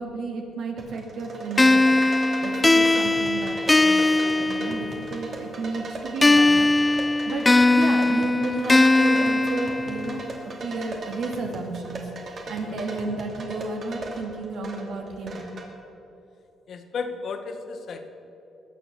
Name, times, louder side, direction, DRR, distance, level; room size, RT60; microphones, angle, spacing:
voice 1, 0.0-1.8 2.4-4.1 4.4-6.7 7.0-10.3 10.6-15.4, right 3 dB, 70° right, 2 dB, 2.3 m, -32 dB
sound 1, 0.8-15.7, right 2 dB, 50° right, 2.7 m, -38 dB
sound 2, 1.6-5.2 6.2-10.2, left 2 dB, 20° left, 0.3 m, -20 dB
voice 2, 16.7-18.1, left 5 dB, 60° left, 7 dB, 1.3 m, -34 dB
20.5 x 7.1 x 6.9 m, 3.0 s
cardioid pair, 90°, 0 cm